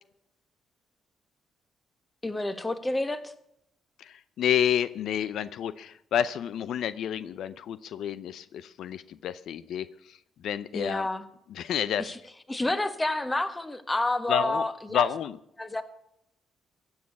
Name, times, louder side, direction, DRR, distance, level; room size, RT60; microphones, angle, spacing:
voice 1, 2.2-3.3 10.7-11.2 12.0-12.2 12.5-15.1 15.6-15.8, left 2 dB, 15° left, 11 dB, 1.4 m, -29 dB
voice 2, 4.0-11.1 11.5-12.1 14.3-14.6 14.9-15.4, left 9 dB, 75° left, 15 dB, 0.5 m, -30 dB
15.5 x 6.4 x 9.6 m, 0.78 s
cardioid pair, 90°, 0 cm